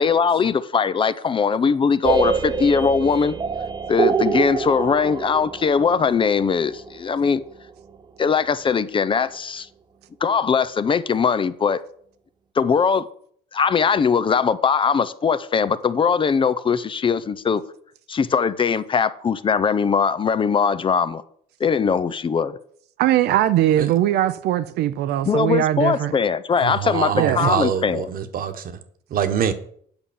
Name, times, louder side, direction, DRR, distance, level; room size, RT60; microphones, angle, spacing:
voice 1, 0.0-3.3 3.9-7.4 8.2-9.7 10.2-11.8 12.6-13.0 13.5-17.6 18.1-21.2 21.6-22.6 25.3-28.1, left 6 dB, 30° left, 0.6 m, -20 dB
sound 1, 2.0-7.8, right 5 dB, 25° right, 0.7 m, -25 dB
voice 2, 23.0-26.1 27.1-27.5, right 12 dB, 80° right, 0.6 m, -20 dB
voice 3, 26.6-28.8 29.1-29.5, right 8 dB, 55° right, 1.3 m, -24 dB
8.8 x 5.5 x 7.2 m
cardioid pair, 110°, 17 cm